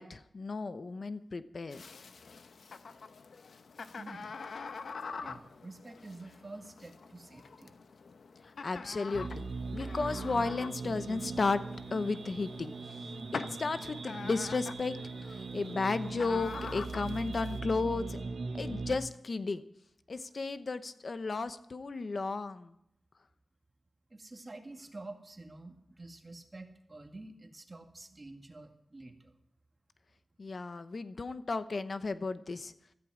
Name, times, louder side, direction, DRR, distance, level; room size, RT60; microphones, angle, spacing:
voice 1, 0.0-1.8 8.6-9.4 9.7-11.6 11.9-12.7 13.3-15.0 15.2-18.2 18.5-19.6 20.1-22.7 30.4-32.7, left 3 dB, 55° left, 12 dB, 0.8 m, -34 dB
sound 1, 1.7-17.6, left 4 dB, 85° left, 0.8 m, -46 dB
voice 2, 3.9-4.4 5.2-7.8 24.1-29.4, right 2 dB, 35° right, 4 dB, 2.1 m, -48 dB
sound 2, 9.1-19.0, right 4 dB, 65° right, 1.1 m, -40 dB
16.0 x 14.5 x 5.0 m, 0.76 s
wide cardioid pair, 75°, 0 cm